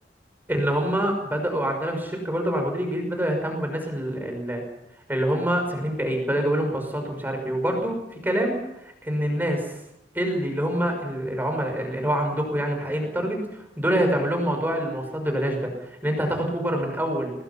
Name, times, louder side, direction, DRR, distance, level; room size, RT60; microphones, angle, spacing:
voice 1, 0.5-4.6 5.1-8.0 8.2-9.7 10.1-17.3, equal, 10° right, 4 dB, 5.9 m, -26 dB
26.5 x 20.5 x 5.8 m, 0.82 s
head